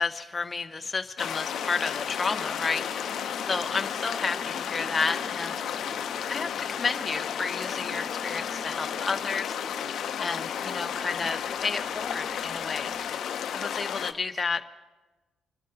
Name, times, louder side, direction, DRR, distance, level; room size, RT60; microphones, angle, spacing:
voice 1, 0.0-5.9 6.3-9.6 10.2-12.9 13.5-14.6, left 4 dB, 30° left, 7 dB, 0.6 m, -31 dB
sound 1, 1.2-14.1, left 8 dB, 70° left, 0.6 m, -33 dB
sound 2, 1.5-13.1, right 2 dB, 40° right, 1.9 m, -49 dB
sound 3, 1.5-11.5, left 1 dB, 85° right, 4.9 m, -48 dB
27.0 x 12.0 x 2.7 m, 1.2 s
cardioid pair, 90°, 0 cm